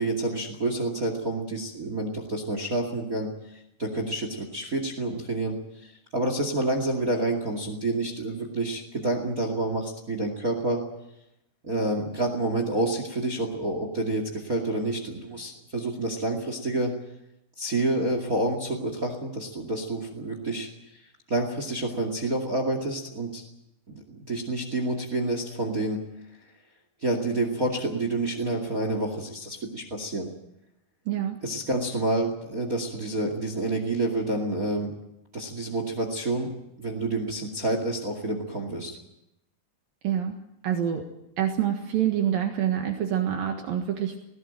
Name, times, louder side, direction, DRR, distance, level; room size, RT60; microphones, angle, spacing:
voice 1, 0.0-10.8 11.6-16.9 17.6-21.0 21.3-23.4 23.9-26.1 27.0-30.3 31.4-34.9 35.3-36.5 36.8-39.0, right 2 dB, 25° right, 5 dB, 2.2 m, -28 dB
voice 2, 31.1-31.4 40.0-40.4 40.6-41.1 41.4-44.2, right 10 dB, 70° right, 3 dB, 3.2 m, -26 dB
20.0 x 17.0 x 9.1 m, 0.86 s
omnidirectional pair, 4.5 m